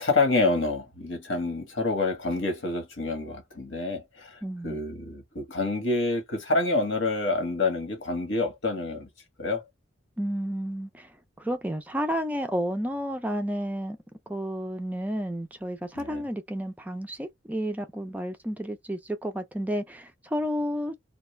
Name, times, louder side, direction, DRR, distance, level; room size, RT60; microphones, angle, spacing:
voice 1, 0.0-4.4 4.6-9.1 9.4-9.6 15.9-16.2, left 3 dB, 70° left, 1.1 m, -27 dB
voice 2, 4.4-4.8 10.2-11.1 11.4-14.0 14.3-20.9, equal, 10° right, 0.3 m, -31 dB
2.3 x 2.2 x 3.1 m
head